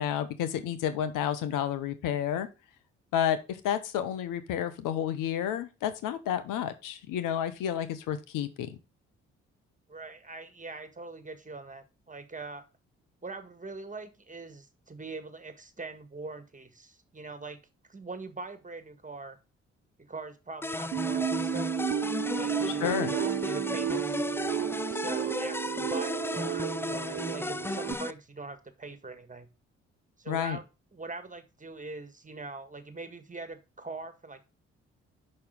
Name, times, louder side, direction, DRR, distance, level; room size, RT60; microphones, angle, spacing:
voice 1, 0.0-2.5 3.1-8.8 22.8-23.1 30.3-30.6, left 10 dB, 75° left, 12 dB, 0.9 m, -30 dB
voice 2, 9.9-12.7 13.2-17.6 17.9-19.4 20.1-21.7 22.4-24.2 24.9-29.5 30.2-30.6 30.9-34.5, right 3 dB, 25° right, 10 dB, 1.8 m, -42 dB
sound 1, 20.6-28.1, left 2 dB, 5° left, 0.5 m, -34 dB
sound 2, 20.9-27.9, right 10 dB, 50° right, 0.5 m, -32 dB
6.0 x 5.5 x 5.1 m, 0.29 s
hypercardioid pair, 45°, 32 cm